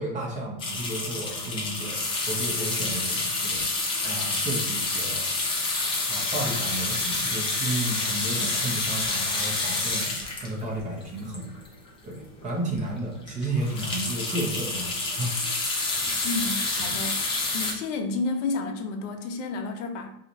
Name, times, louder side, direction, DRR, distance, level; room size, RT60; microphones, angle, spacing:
voice 1, 0.0-5.3 6.1-10.1 10.4-11.5 12.0-15.3 16.8-17.0, right 1 dB, 15° right, -2 dB, 0.7 m, -32 dB
sound 1, 0.6-11.9 12.4-12.5 12.7-12.9 13.2-17.7, left 3 dB, 15° left, 0.4 m, -28 dB
voice 2, 16.2-17.2 17.5-20.1, left 3 dB, 55° left, 4 dB, 0.7 m, -31 dB
2.9 x 2.4 x 3.9 m, 0.76 s
hypercardioid pair, 130°, 43 cm